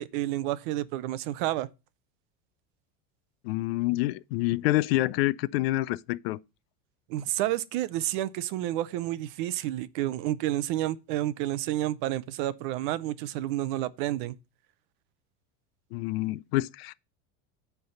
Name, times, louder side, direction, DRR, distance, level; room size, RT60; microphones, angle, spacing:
voice 1, 0.0-1.7 7.1-14.3, right 14 dB, 50° right, 0.6 m, -30 dB
voice 2, 3.4-6.4 15.9-16.9, left 18 dB, 70° left, 0.5 m, -27 dB
9.4 x 3.5 x 6.9 m
cardioid pair, 175°, 32 cm